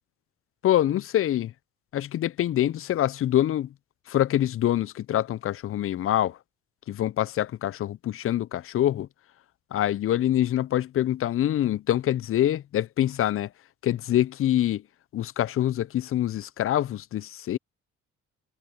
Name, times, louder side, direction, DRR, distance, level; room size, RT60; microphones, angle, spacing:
voice 1, 0.6-1.5 1.9-3.7 4.1-6.4 6.9-9.1 9.7-13.5 13.8-14.8 15.1-17.6, left 12 dB, 45° left, 0.4 m, -25 dB
cardioid pair, 90°, 30 cm